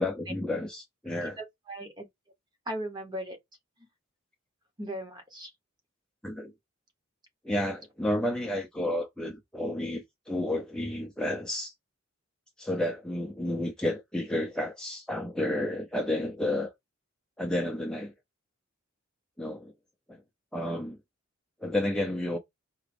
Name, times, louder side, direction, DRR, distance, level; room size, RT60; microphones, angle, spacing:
voice 1, 0.0-1.4 6.2-6.5 7.4-11.7 12.6-16.7 17.4-18.1 19.4-19.7 20.1-20.2 20.5-21.0 21.6-22.4, left 1 dB, 5° left, 0.5 m, -31 dB
voice 2, 1.4-2.1 2.7-3.4 4.8-5.5, right 1 dB, 20° right, 1.0 m, -37 dB
4.7 x 2.9 x 3.4 m
head